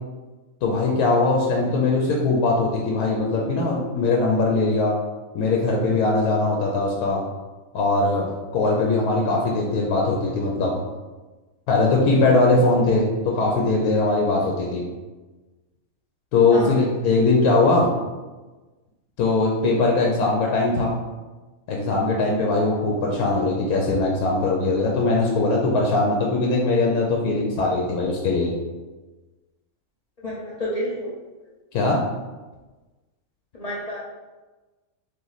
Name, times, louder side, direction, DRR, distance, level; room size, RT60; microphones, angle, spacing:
voice 1, 0.6-4.9 5.3-7.2 7.7-8.3 8.5-10.9 11.7-14.8 16.3-17.9 19.2-20.9 21.7-28.5 31.7-32.0, left 3 dB, 90° left, -1 dB, 1.1 m, -21 dB
voice 2, 30.2-31.1 33.5-34.0, equal, 45° left, -7 dB, 0.5 m, -29 dB
3.0 x 3.0 x 3.9 m, 1.2 s
omnidirectional pair, 1.5 m